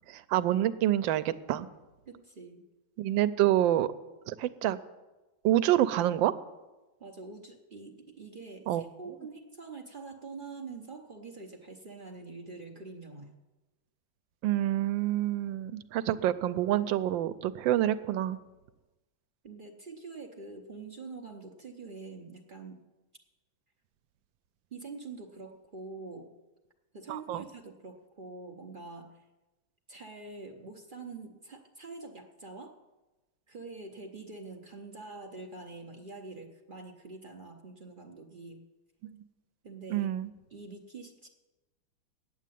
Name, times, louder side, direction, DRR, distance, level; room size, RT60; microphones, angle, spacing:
voice 1, 0.1-1.7 3.0-3.9 4.3-4.8 5.4-6.3 8.7-8.8 14.4-18.4 27.1-27.4 39.9-40.3, right 13 dB, 80° right, 13 dB, 1.3 m, -27 dB
voice 2, 2.1-2.6 7.0-13.3 19.4-22.8 24.7-26.3 26.9-29.1 29.9-32.8 33.5-38.6 39.6-40.1 40.5-41.3, right 3 dB, 55° right, 2 dB, 0.5 m, -45 dB
8.4 x 8.3 x 9.1 m, 1.1 s
omnidirectional pair, 2.1 m